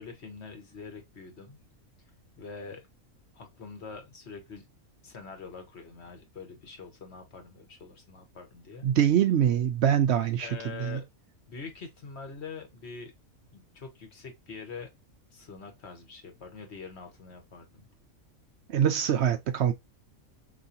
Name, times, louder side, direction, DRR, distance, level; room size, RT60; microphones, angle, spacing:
voice 1, 0.0-1.6 2.4-2.9 3.3-4.6 5.0-8.9 10.4-11.0 11.5-13.1 13.5-14.9 15.3-17.9, left 5 dB, 50° left, 1.3 m, -44 dB
voice 2, 8.8-10.5 10.8-11.0 18.7-19.7, right 9 dB, 65° right, 0.7 m, -24 dB
4.8 x 3.0 x 2.6 m
omnidirectional pair, 1.5 m